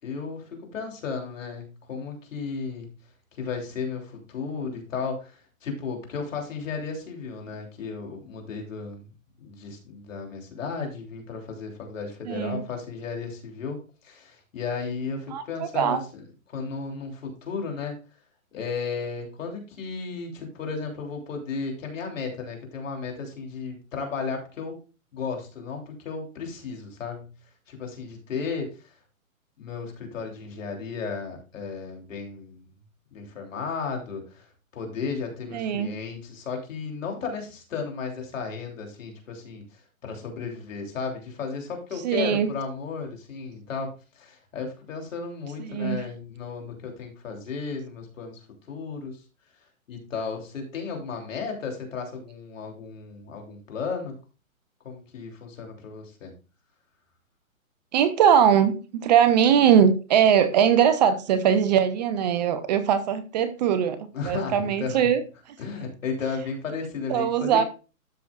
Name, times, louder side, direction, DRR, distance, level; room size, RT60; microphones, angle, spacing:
voice 1, 0.0-2.9 3.3-9.0 9.4-16.2 16.5-17.9 18.5-24.8 25.1-27.3 27.7-29.0 29.6-32.6 33.1-49.2 49.9-54.1 54.8-56.3 64.1-65.0 65.6-67.7, left 5 dB, 65° left, 3.4 m, -34 dB
voice 2, 12.3-12.6 15.3-16.0 35.5-35.9 42.0-42.5 45.6-46.0 57.9-64.0 64.2-65.2 67.1-67.6, right 8 dB, 30° right, 0.7 m, -21 dB
12.5 x 6.2 x 2.5 m
hypercardioid pair, 140°, 42 cm